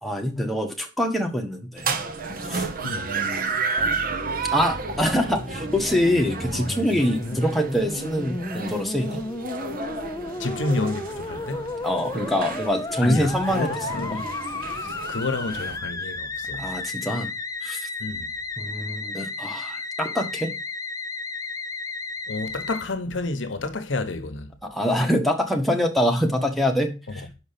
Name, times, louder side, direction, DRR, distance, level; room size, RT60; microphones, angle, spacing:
voice 1, 0.0-2.0 2.5-2.7 3.0-3.5 4.5-9.2 11.8-14.2 16.6-17.3 17.6-17.9 18.6-20.5 24.6-27.2, equal, ahead, 1.2 m, -25 dB
sound 1, 1.8-15.8, right 4 dB, 50° right, 0.9 m, -32 dB
voice 2, 2.8-3.1 7.2-7.5 10.4-11.6 13.0-14.3 14.8-16.7 18.0-18.3 22.3-24.5, left 2 dB, 80° left, 0.9 m, -30 dB
Musical instrument, 3.8-22.8, left 3 dB, 20° left, 0.6 m, -34 dB
5.8 x 5.3 x 5.6 m
head